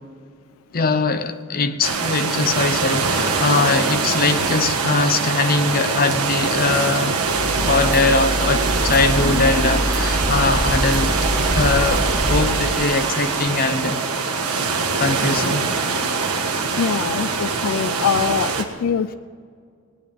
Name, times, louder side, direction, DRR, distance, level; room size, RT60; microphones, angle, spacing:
voice 1, 0.7-7.2 7.6-14.0 15.0-15.7, left 3 dB, 40° left, 0.8 m, -21 dB
sound 1, 1.8-18.6, right 4 dB, 80° right, 1.6 m, -23 dB
sound 2, 7.3-12.4, right 1 dB, 35° right, 1.8 m, -24 dB
voice 2, 16.8-19.1, left 7 dB, 65° left, 0.4 m, -23 dB
19.5 x 9.6 x 5.5 m
head